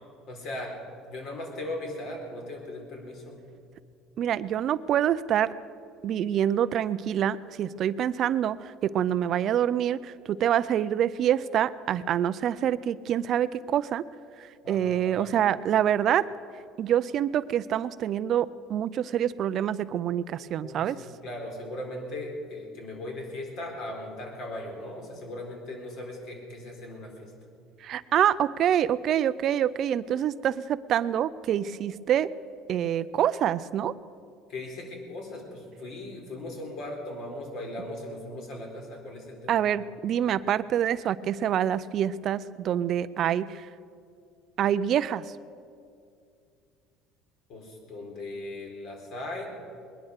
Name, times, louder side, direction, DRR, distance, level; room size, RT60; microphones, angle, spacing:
voice 1, 0.3-0.8 1.1-3.4 14.6-15.3 20.6-27.3 34.5-39.7 47.5-49.5, left 1 dB, 55° left, 1 dB, 4.0 m, -38 dB
voice 2, 4.2-5.5 6.0-14.0 14.7-16.3 16.8-21.0 27.8-32.3 32.7-33.9 39.5-43.7 44.6-45.2, right 10 dB, 45° right, 15 dB, 0.4 m, -26 dB
21.0 x 10.5 x 6.5 m, 2.4 s
cardioid pair, 130°, 0 cm